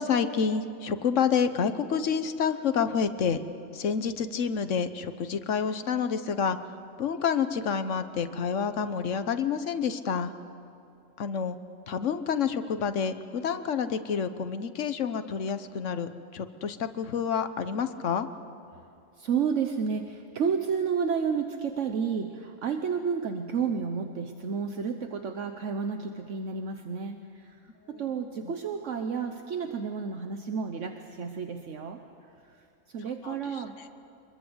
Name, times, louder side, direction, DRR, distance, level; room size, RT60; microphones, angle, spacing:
voice 1, 0.0-3.4 3.7-6.6 7.0-10.3 11.2-11.6 11.9-18.3 28.4-28.5 33.2-33.4, left 6 dB, 70° left, 10 dB, 1.4 m, -28 dB
voice 2, 19.2-27.6 27.9-32.0 32.9-33.9, right 6 dB, 70° right, 6 dB, 1.3 m, -31 dB
24.5 x 22.0 x 8.1 m, 2.6 s
omnidirectional pair, 1.3 m